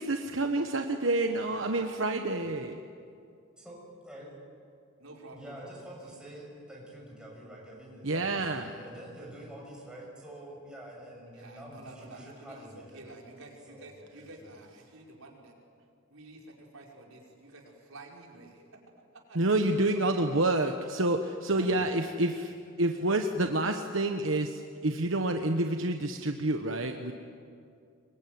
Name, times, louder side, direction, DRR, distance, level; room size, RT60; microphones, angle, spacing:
voice 1, 0.0-2.8 8.0-8.7 19.3-22.5 22.8-27.1, right 2 dB, 65° right, 5 dB, 1.2 m, -28 dB
voice 2, 1.3-2.1 5.0-5.8 11.3-15.6 16.1-18.8 19.1-20.4 21.5-21.9, right 2 dB, 85° right, -1 dB, 5.0 m, -50 dB
voice 3, 5.3-13.1 13.7-14.5 21.5-21.9, right 1 dB, 5° right, -3 dB, 7.1 m, -47 dB
25.5 x 22.5 x 9.5 m, 2.4 s
head